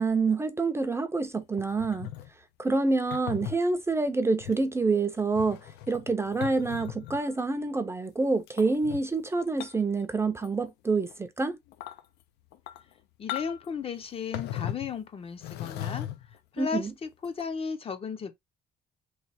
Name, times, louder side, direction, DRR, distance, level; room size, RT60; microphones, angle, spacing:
voice 1, 0.0-2.1 2.6-11.1 11.4-11.6 16.6-16.9, right 3 dB, 15° right, 0.5 m, -27 dB
sound 1, 1.6-2.3 3.1-3.6 4.4-4.6 5.2-7.3 8.5-9.0 9.6-10.0 10.3-10.7 11.1-11.2 11.7-12.0 12.5-12.9 13.3-13.7 14.3-14.9 15.4-16.4 17.2-17.4, left 12 dB, 80° left, 0.6 m, -38 dB
voice 2, 13.2-18.3, left 6 dB, 35° left, 0.6 m, -35 dB
3.2 x 2.3 x 4.1 m
cardioid pair, 110°, 17 cm